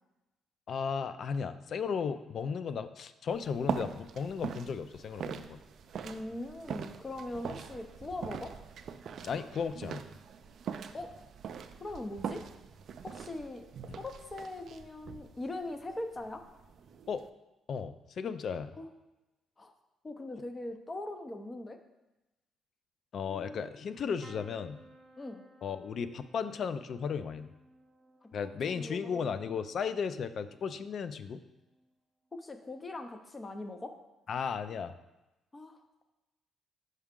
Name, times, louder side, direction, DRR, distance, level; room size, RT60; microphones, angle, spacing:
voice 1, 0.7-5.6 9.2-10.0 13.9-14.0 17.1-17.2 17.7-18.7 23.1-24.8 25.6-27.5 28.3-31.4 34.3-34.9, left 6 dB, 60° left, 12 dB, 0.3 m, -35 dB
sound 1, 3.3-17.3, right 7 dB, 65° right, 0.3 m, -42 dB
voice 2, 6.0-8.5 10.9-11.1 11.8-12.4 13.0-13.7 14.0-16.4 18.8-18.9 19.6-19.7 20.0-21.8 23.2-23.8 25.2-25.4 28.2-29.5 32.3-33.9 35.5-35.8, left 2 dB, 25° left, 7 dB, 0.6 m, -41 dB
sound 2, 24.2-32.0 32.5-33.0 34.3-34.5 34.7-34.8, right 2 dB, 15° right, 0.7 m, -60 dB
5.4 x 4.8 x 3.6 m, 1.0 s
cardioid pair, 90°, 0 cm